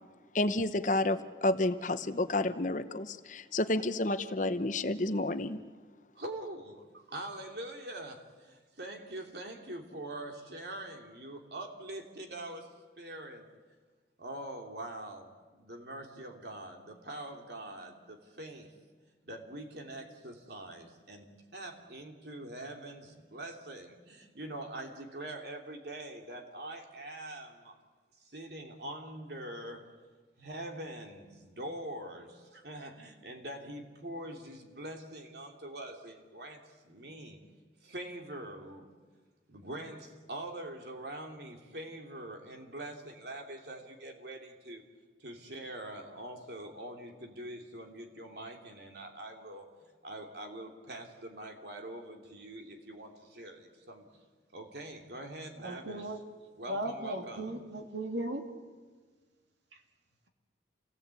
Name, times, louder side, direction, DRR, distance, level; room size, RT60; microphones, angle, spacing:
voice 1, 0.3-5.6, left 2 dB, 45° left, 11 dB, 0.9 m, -30 dB
voice 2, 6.2-13.5 14.2-18.7 19.2-27.8 28.2-29.9 30.4-37.4 37.8-38.9 39.5-44.8 45.2-49.7 50.0-54.1 54.5-56.1 56.6-57.6, right 1 dB, 65° right, 2 dB, 3.1 m, -44 dB
voice 3, 55.6-56.2 56.7-58.4, right 1 dB, 80° right, 3 dB, 2.8 m, -36 dB
27.5 x 17.5 x 8.4 m, 1.4 s
head